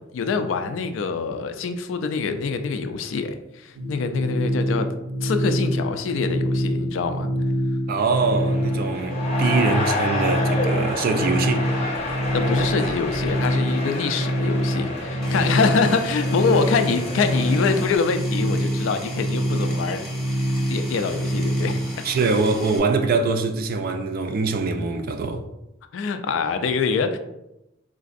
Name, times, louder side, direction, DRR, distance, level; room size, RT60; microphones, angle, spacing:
voice 1, 0.1-4.9 5.2-7.3 12.3-20.1 20.7-21.8 24.8-24.9 25.9-27.2, left 5 dB, 70° left, 0.3 m, -25 dB
sound 1, 3.7-22.0, equal, 75° right, 0.6 m, -25 dB
voice 2, 7.9-11.7 22.0-25.4, right 4 dB, 50° right, 0.3 m, -23 dB
sound 2, 8.0-18.0, left 2 dB, 30° left, 0.6 m, -30 dB
Power tool, 15.2-22.8, left 1 dB, ahead, 0.8 m, -39 dB
3.8 x 2.5 x 2.5 m
head